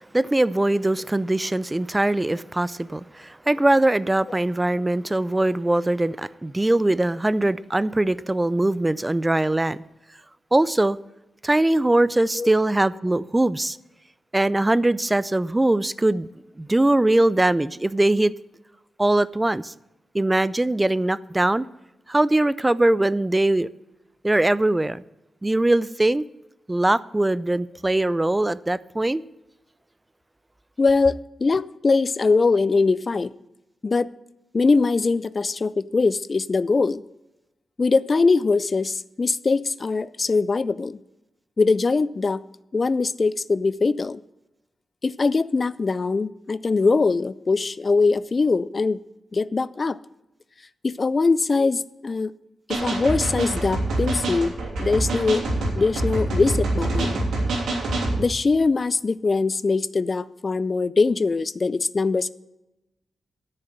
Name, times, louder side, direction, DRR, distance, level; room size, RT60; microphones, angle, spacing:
voice 1, 0.1-9.8 10.5-11.0 11.4-13.8 14.3-16.3 16.6-18.3 19.0-19.7 20.1-21.7 22.1-23.7 24.2-25.0 25.4-26.3 26.7-29.2, right 1 dB, 20° right, 0.4 m, -21 dB
voice 2, 30.8-33.3 33.8-34.1 34.5-37.0 37.8-41.0 41.6-42.4 42.7-44.2 45.0-49.0 49.3-50.0 50.8-52.3 52.7-54.5 54.8-57.2 58.2-62.3, left 4 dB, 45° left, 0.4 m, -22 dB
sound 1, 52.7-58.2, right 2 dB, 85° right, 3.0 m, -25 dB
9.6 x 6.7 x 8.6 m
cardioid pair, 55°, 0 cm